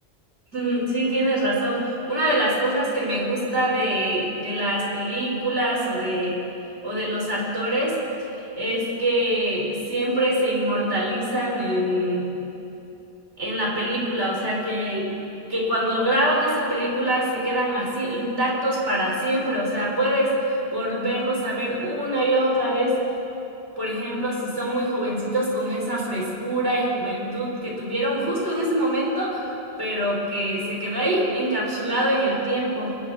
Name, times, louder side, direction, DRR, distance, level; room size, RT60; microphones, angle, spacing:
voice 1, 0.5-6.4 6.8-8.0 8.6-12.3 13.4-15.1 15.5-22.9 23.8-29.5 29.8-32.9, right 1 dB, 85° right, -4 dB, 5.3 m, -24 dB
27.0 x 23.5 x 4.3 m, 2.9 s
omnidirectional pair, 1.1 m